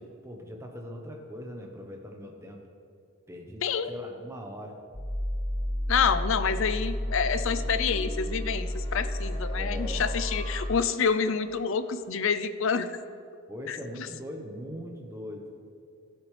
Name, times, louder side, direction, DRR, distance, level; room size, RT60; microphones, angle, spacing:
voice 1, 0.0-2.6 3.3-3.6 3.9-4.7 9.3-10.2 13.5-15.5, equal, 10° right, 1 dB, 1.0 m, -41 dB
sound 1, 4.9-11.9, equal, 20° left, 0.8 m, -32 dB
voice 2, 5.9-12.9 13.7-14.1, left 6 dB, 60° left, 11 dB, 0.5 m, -28 dB
15.0 x 8.1 x 3.3 m, 2.4 s
head